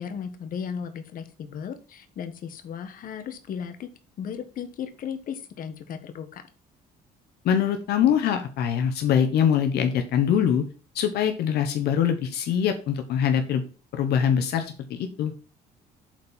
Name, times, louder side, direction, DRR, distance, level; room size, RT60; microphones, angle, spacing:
voice 1, 0.0-3.9 4.2-6.4, left 7 dB, 55° left, 9 dB, 1.4 m, -35 dB
voice 2, 7.4-10.6 10.9-13.6 13.9-15.3, left 8 dB, 70° left, 6 dB, 1.2 m, -23 dB
7.7 x 4.5 x 7.1 m, 0.36 s
cardioid pair, 110°, 17 cm